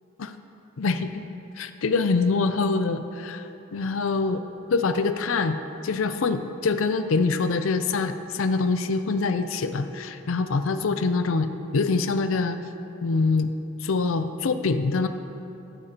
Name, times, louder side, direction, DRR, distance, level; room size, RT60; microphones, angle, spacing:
voice 1, 0.8-1.2 1.6-4.4 4.7-5.6 5.8-12.6 13.0-13.5 13.8-15.1, left 4 dB, 80° left, 9 dB, 0.5 m, -25 dB
15.0 x 11.5 x 2.9 m, 2.9 s
head